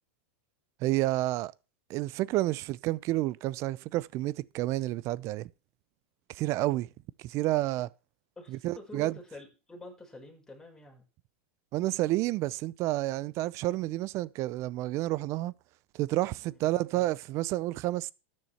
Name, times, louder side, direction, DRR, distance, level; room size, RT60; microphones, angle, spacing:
voice 1, 0.8-1.5 1.9-5.5 6.3-6.9 7.2-7.9 8.5-9.2 11.7-15.5 15.9-18.1, right 17 dB, 45° right, 0.6 m, -30 dB
voice 2, 8.4-11.0 16.4-16.7, left 2 dB, 10° left, 5.4 m, -48 dB
13.0 x 9.7 x 4.3 m
hypercardioid pair, 110°, 7 cm